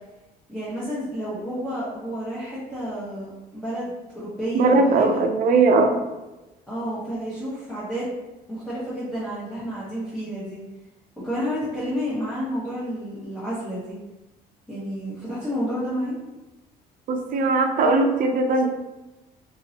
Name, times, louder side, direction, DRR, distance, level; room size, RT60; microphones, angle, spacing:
voice 1, 0.5-5.2 6.7-8.2 8.5-10.6 11.2-14.0 14.7-16.1, equal, 5° left, -11 dB, 1.2 m, -30 dB
voice 2, 4.5-6.0 17.1-18.7, right 3 dB, 55° right, 5 dB, 0.5 m, -19 dB
3.0 x 2.7 x 2.7 m, 1.1 s
cardioid pair, 110°, 17 cm